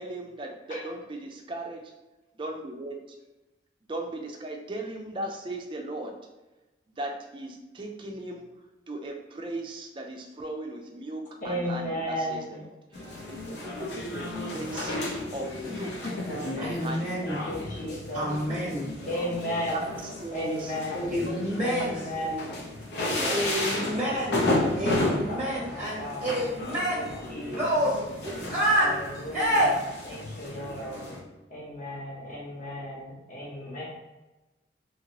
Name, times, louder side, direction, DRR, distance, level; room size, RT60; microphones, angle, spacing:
voice 1, 0.0-1.9 2.3-3.0 3.9-6.2 6.9-8.5 8.9-15.0 15.3-16.1 16.6-17.2 17.9-18.2 19.0-19.4 19.7-19.8 20.2-20.7 21.0-21.4 22.1-22.4 23.0-23.5, right 1 dB, 25° right, 2 dB, 0.3 m, -37 dB
voice 2, 11.4-12.6 16.0-16.7 17.2-18.4 19.1-20.0 20.3-21.2 21.6-22.6 23.0-24.8 25.3-27.9 28.7-29.8 30.0-31.1 31.5-33.8, equal, 45° left, -4 dB, 1.0 m, -35 dB
sound 1, 12.9-31.2, left 2 dB, 70° left, 0.6 m, -33 dB
voice 3, 16.6-17.4 18.1-18.9 20.9-22.0 23.3-24.5 24.8-27.1 27.5-28.8 29.3-29.8, equal, 10° right, -6 dB, 0.7 m, -28 dB
2.9 x 2.7 x 2.8 m, 1.1 s
head